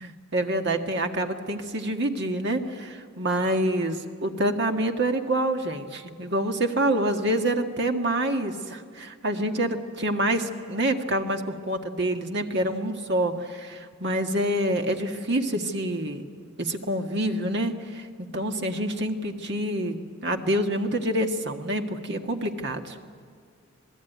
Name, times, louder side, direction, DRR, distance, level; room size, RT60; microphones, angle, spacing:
voice 1, 0.3-16.3 16.6-18.1 18.3-23.0, right 1 dB, 50° right, 4 dB, 1.7 m, -27 dB
27.0 x 19.0 x 9.3 m, 2.1 s
head